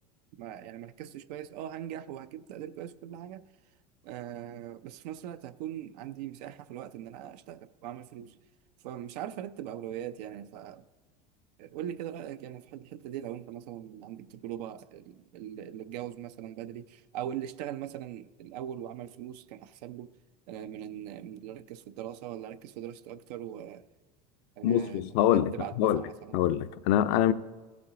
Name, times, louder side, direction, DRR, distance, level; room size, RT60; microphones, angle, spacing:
voice 1, 0.4-3.4 4.0-8.4 8.8-10.8 11.6-20.1 20.5-23.8 24.6-26.4, right 11 dB, 75° right, 0.5 m, -41 dB
voice 2, 24.6-26.0 26.3-27.3, left 11 dB, 65° left, 0.5 m, -25 dB
15.0 x 5.9 x 3.7 m
supercardioid pair, 110°, 21 cm